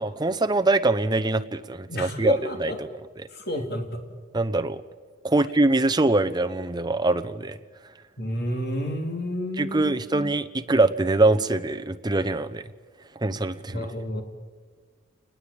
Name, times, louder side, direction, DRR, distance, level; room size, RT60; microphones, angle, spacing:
voice 1, 0.0-2.7 4.3-4.8 5.2-7.6 9.6-12.6 13.2-13.9, right 2 dB, 20° right, 9 dB, 0.9 m, -23 dB
voice 2, 1.9-2.8 3.3-4.0 5.3-5.4 8.2-10.3 13.7-14.2, equal, 50° left, 4 dB, 3.4 m, -31 dB
29.0 x 20.5 x 8.7 m, 1.5 s
head